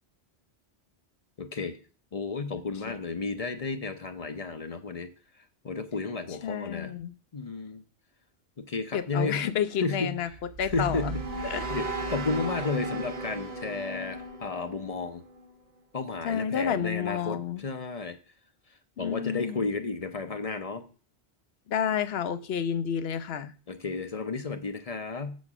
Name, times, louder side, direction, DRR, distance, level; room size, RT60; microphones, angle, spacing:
voice 1, 1.4-1.8 2.1-5.1 5.6-6.9 7.3-7.8 8.6-9.5 9.8-10.2 10.6-11.1 11.4-15.2 15.9-18.2 19.0-20.8 23.7-25.4, left 4 dB, 40° left, 9 dB, 0.7 m, -33 dB
voice 2, 6.4-7.1 8.9-10.3 10.6-11.2 11.4-11.7 16.2-17.6 19.0-19.7 21.7-23.5, left 8 dB, 65° left, 13 dB, 0.9 m, -30 dB
sound 1, 10.3-15.5, right 2 dB, 65° right, 1.1 m, -35 dB
7.8 x 4.2 x 6.0 m, 0.37 s
omnidirectional pair, 1.1 m